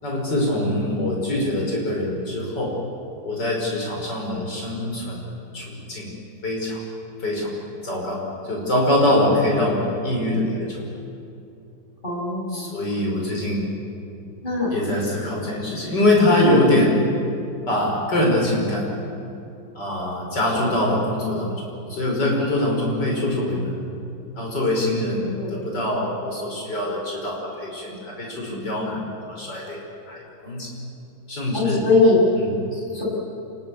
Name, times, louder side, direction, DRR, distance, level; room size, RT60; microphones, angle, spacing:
voice 1, 0.0-2.8 3.2-6.1 6.4-6.8 7.2-7.6 7.8-10.8 12.5-13.7 14.7-17.1 17.7-18.9 19.7-23.7 24.4-29.8 30.1-30.7 31.3-31.9 32.4-32.5, left 1 dB, 65° left, -1 dB, 6.2 m, -23 dB
voice 2, 12.0-12.8 14.4-14.7 25.3-25.5 28.5-28.9 31.5-32.2 32.7-33.0, left 3 dB, 25° left, -4 dB, 7.3 m, -21 dB
27.5 x 20.0 x 8.6 m, 2.6 s
omnidirectional pair, 2.0 m